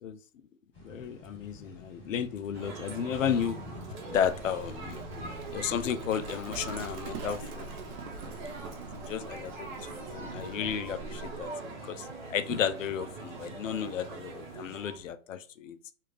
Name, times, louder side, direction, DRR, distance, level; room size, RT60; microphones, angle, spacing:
sound 1, 0.7-15.1, left 1 dB, 5° left, 0.4 m, -51 dB
voice 1, 0.8-3.6 4.1-5.0 5.5-7.7 8.9-15.8, left 8 dB, 65° left, 0.5 m, -33 dB
sound 2, 2.5-15.0, right 3 dB, 35° right, 0.9 m, -42 dB
Livestock farm animals working animals, 4.1-11.5, right 3 dB, 85° right, 1.0 m, -44 dB
3.4 x 2.4 x 3.2 m
hypercardioid pair, 160°, 43 cm